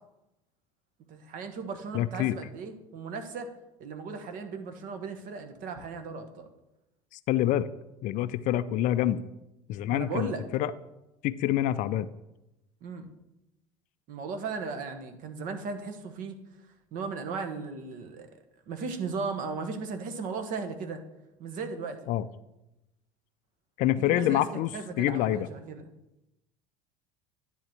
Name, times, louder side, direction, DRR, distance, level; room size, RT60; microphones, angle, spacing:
voice 1, 1.1-3.5 3.8-6.5 9.9-10.4 12.8-13.0 14.1-16.4 16.9-18.3 18.7-21.0 21.4-22.0 24.1-24.4 24.7-25.8, right 4 dB, 50° right, 7 dB, 1.3 m, -36 dB
voice 2, 1.9-2.4 7.1-7.7 8.0-9.2 9.7-10.7 11.2-12.1 22.1-22.3 23.8-25.5, left 12 dB, 45° left, 14 dB, 0.4 m, -27 dB
10.5 x 3.8 x 7.4 m, 0.93 s
figure-of-eight pair, 70°, 18 cm